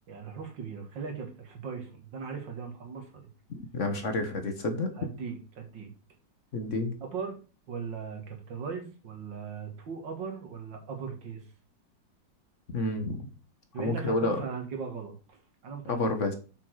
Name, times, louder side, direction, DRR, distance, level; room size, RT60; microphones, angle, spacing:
voice 1, 0.1-3.2 5.0-5.9 7.0-7.4 7.7-11.4 13.7-16.0, right 5 dB, 85° right, 3 dB, 2.6 m, -38 dB
voice 2, 3.7-4.9 6.5-6.9 12.7-13.3 13.8-14.4 15.9-16.3, left 2 dB, 45° left, 7 dB, 1.4 m, -29 dB
7.3 x 6.3 x 4.8 m, 0.35 s
omnidirectional pair, 1.9 m